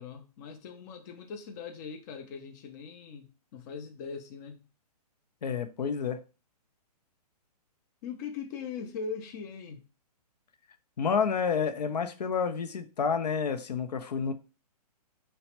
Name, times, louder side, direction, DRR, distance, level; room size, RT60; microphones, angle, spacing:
voice 1, 0.0-4.7 8.0-9.8, left 6 dB, 30° left, 0.4 m, -40 dB
voice 2, 5.4-6.2 11.0-14.3, left 6 dB, 80° left, 0.5 m, -29 dB
3.1 x 2.1 x 2.8 m
hypercardioid pair, 140°, 21 cm